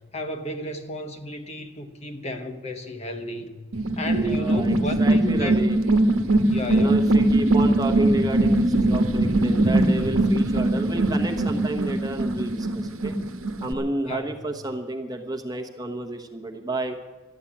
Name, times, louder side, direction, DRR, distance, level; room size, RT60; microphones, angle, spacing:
voice 1, 0.1-3.5 4.0-5.6 6.5-7.0 14.1-14.3, left 1 dB, 30° left, 6 dB, 1.0 m, -33 dB
sound 1, 3.7-13.7, right 1 dB, 80° right, 1.2 m, -21 dB
voice 2, 4.1-5.8 6.7-13.1 13.6-17.0, right 2 dB, 20° right, 3 dB, 1.1 m, -31 dB
13.0 x 11.0 x 8.6 m, 1.2 s
head